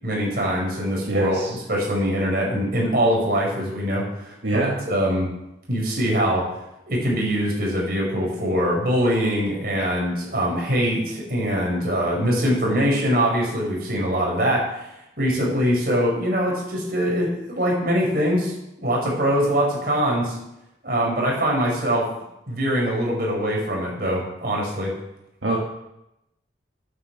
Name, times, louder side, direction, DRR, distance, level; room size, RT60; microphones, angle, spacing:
voice 1, 0.0-1.4 1.7-4.3 4.9-5.3 5.7-6.5 6.9-14.7 15.2-20.4 20.8-22.1 22.5-24.9, equal, 55° right, -2 dB, 5.5 m, -23 dB
voice 2, 1.1-1.5 4.4-4.8 25.4-25.6, right 2 dB, 90° right, -2 dB, 1.9 m, -23 dB
10.0 x 9.5 x 7.9 m, 0.87 s
head